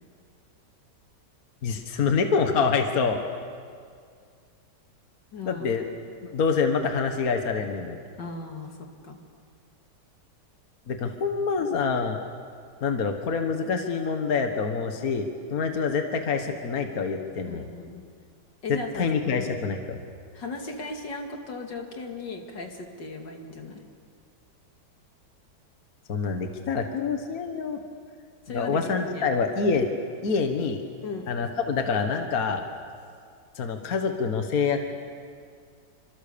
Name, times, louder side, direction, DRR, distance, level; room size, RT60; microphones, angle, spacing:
voice 1, 1.6-3.2 5.5-5.8 6.2-8.0 10.9-12.2 12.8-17.6 18.7-20.0 26.1-27.8 28.5-29.9 30.2-30.8 31.3-32.6 33.6-34.8, left 5 dB, 55° left, 5 dB, 1.9 m, -26 dB
voice 2, 5.3-5.7 8.2-9.2 17.5-18.0 18.6-19.5 20.3-23.8 28.5-29.3 31.0-31.3, left 3 dB, 85° left, 3 dB, 2.9 m, -37 dB
28.0 x 25.5 x 7.0 m, 2.2 s
omnidirectional pair, 1.9 m